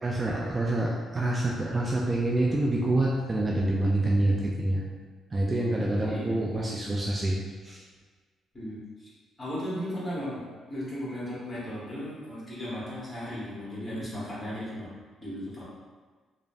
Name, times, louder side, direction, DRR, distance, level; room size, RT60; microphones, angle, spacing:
voice 1, 0.0-4.8 5.3-7.4 7.6-7.8, right 1 dB, 25° right, -3 dB, 0.3 m, -27 dB
voice 2, 6.0-6.4 8.5-9.1 9.4-10.4 10.7-14.9 15.2-15.6, equal, 20° left, -8 dB, 1.2 m, -36 dB
3.0 x 2.0 x 2.6 m, 1.4 s
cardioid pair, 90°, 0 cm